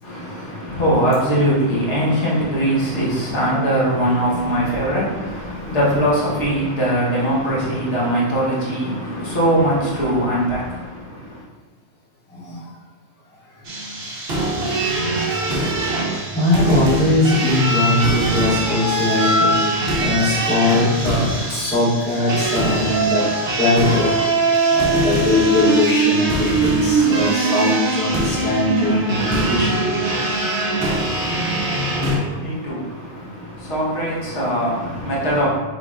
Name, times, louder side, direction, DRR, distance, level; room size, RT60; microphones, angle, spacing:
voice 1, 0.0-11.4 30.7-35.5, right 1 dB, 75° left, -6 dB, 1.5 m, -21 dB
voice 2, 12.3-12.6 16.3-23.3 23.6-24.4 24.7-29.8, left 2 dB, 10° left, -8 dB, 0.9 m, -20 dB
sound 1, 13.6-32.2, right 2 dB, 60° right, 1.1 m, -21 dB
5.7 x 3.6 x 2.4 m, 1.3 s
omnidirectional pair, 1.2 m